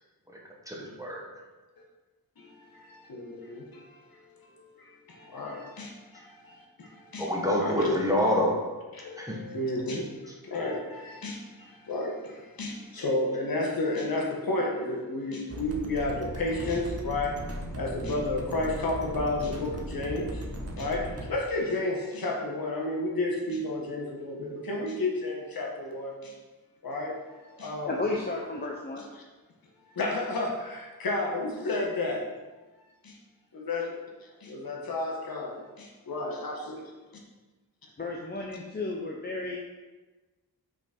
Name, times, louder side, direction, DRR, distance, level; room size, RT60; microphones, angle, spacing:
voice 1, 0.7-1.3 7.2-8.6 9.2-9.4, equal, 10° right, -2 dB, 1.1 m, -26 dB
voice 2, 2.8-3.8 5.1-6.2 6.8-6.9 7.1-7.3 7.6-8.0 8.9-10.1 10.5-11.4 11.9-12.3 12.6-17.4 17.7-20.4 20.8-26.3 26.8-27.2 27.6-28.1 29.0-29.1 30.0-32.2 33.0-33.1 33.5-33.9 34.4-36.8, left 2 dB, 65° left, -1 dB, 1.4 m, -31 dB
sound 1, 15.5-21.3, right 1 dB, 40° right, 1.0 m, -37 dB
voice 3, 27.8-29.0 38.0-39.6, left 2 dB, 25° left, -1 dB, 0.6 m, -33 dB
6.0 x 5.7 x 4.4 m, 1.2 s
wide cardioid pair, 155°, 39 cm